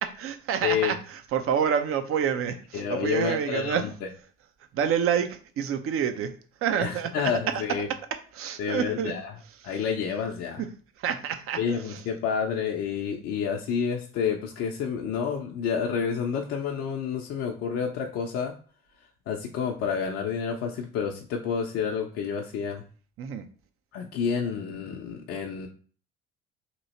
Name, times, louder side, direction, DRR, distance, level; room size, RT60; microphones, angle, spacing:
voice 1, 0.0-3.9 4.7-6.3 6.6-7.6 7.9-8.0 8.3-9.1 9.6-9.8 10.6-10.7 11.0-12.0 23.2-23.5, right 8 dB, 45° right, 0.7 m, -28 dB
voice 2, 0.6-0.9 2.7-3.9 6.8-7.9 8.6-9.3 9.6-10.6 11.6-18.5 19.3-22.8 23.9-25.7, left 7 dB, 50° left, 0.6 m, -29 dB
3.0 x 2.7 x 4.1 m
figure-of-eight pair, 55°, 30 cm